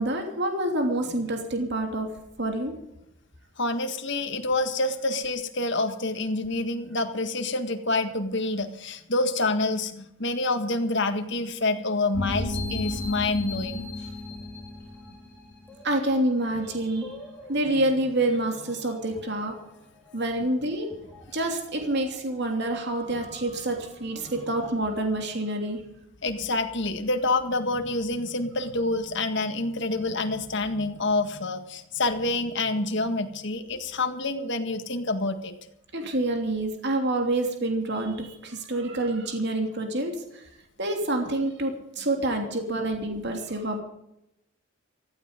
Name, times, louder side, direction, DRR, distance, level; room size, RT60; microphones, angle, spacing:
voice 1, 0.0-2.1 2.4-2.7 15.8-17.1 17.5-19.5 20.1-20.9 21.3-25.8 35.9-40.1 40.8-43.8, right 1 dB, 50° right, 3 dB, 3.0 m, -27 dB
voice 2, 3.6-13.9 26.2-35.5, left 2 dB, 55° left, 7 dB, 1.7 m, -27 dB
sound 1, 12.1-16.1 16.5-19.7 20.1-20.2 20.7-21.7 22.0-22.2 22.9-24.7, left 2 dB, 5° left, 3.7 m, -37 dB
15.5 x 14.5 x 5.2 m, 0.81 s
head